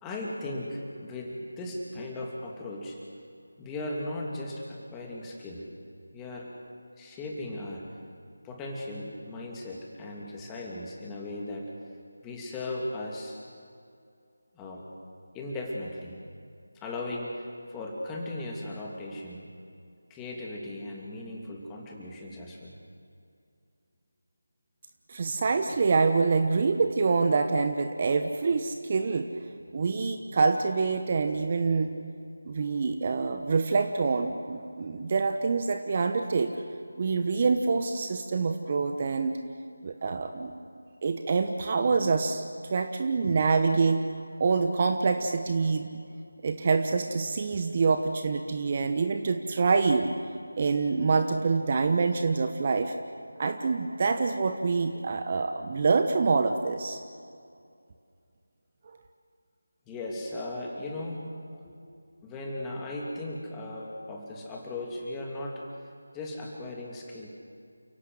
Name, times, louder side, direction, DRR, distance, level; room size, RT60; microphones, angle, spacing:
voice 1, 0.0-3.0 3.6-5.7 6.1-6.5 7.0-7.8 8.4-11.7 12.2-13.4 14.5-14.8 15.3-16.2 16.7-19.5 20.1-22.8 59.9-61.8 62.2-65.6 66.1-67.3, left 1 dB, 10° left, -2 dB, 2.8 m, -37 dB
voice 2, 25.1-29.3 29.7-31.9 32.4-36.5 37.0-39.3 39.8-40.5 41.0-42.4 42.7-44.0 44.4-45.9 46.4-50.1 50.6-52.9 53.4-57.0, right 4 dB, 35° right, 7 dB, 1.1 m, -26 dB
29.0 x 17.5 x 7.9 m, 2.4 s
figure-of-eight pair, 165°, 0 cm